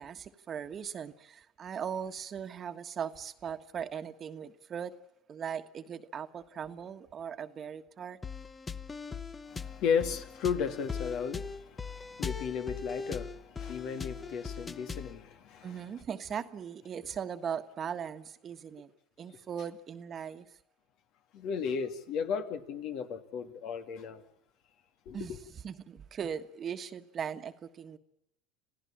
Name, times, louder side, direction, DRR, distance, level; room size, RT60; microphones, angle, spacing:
voice 1, 0.0-5.0 5.3-8.2 15.6-18.9 19.2-20.5 25.1-25.4 25.6-28.0, right 7 dB, 40° right, 1.4 m, -39 dB
sound 1, 8.2-15.2, left 5 dB, 20° left, 0.9 m, -40 dB
voice 2, 9.5-16.0 21.3-24.2 25.1-25.3, left 6 dB, 60° left, 2.3 m, -35 dB
27.5 x 16.5 x 8.7 m
supercardioid pair, 95°, 0 cm